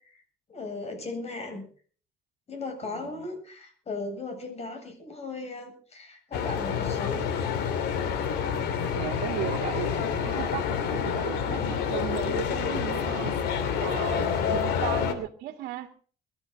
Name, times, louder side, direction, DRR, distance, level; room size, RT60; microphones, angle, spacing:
voice 1, 0.5-1.7 2.5-7.3 14.4-14.7, left 3 dB, 40° left, 6 dB, 7.8 m, -37 dB
voice 2, 2.8-3.3 9.0-13.4 13.8-15.9, right 13 dB, 85° right, 6 dB, 1.9 m, -36 dB
sound 1, 6.3-15.1, left 7 dB, 80° left, 2.9 m, -28 dB
22.5 x 13.5 x 4.0 m, 0.43 s
cardioid pair, 110°, 17 cm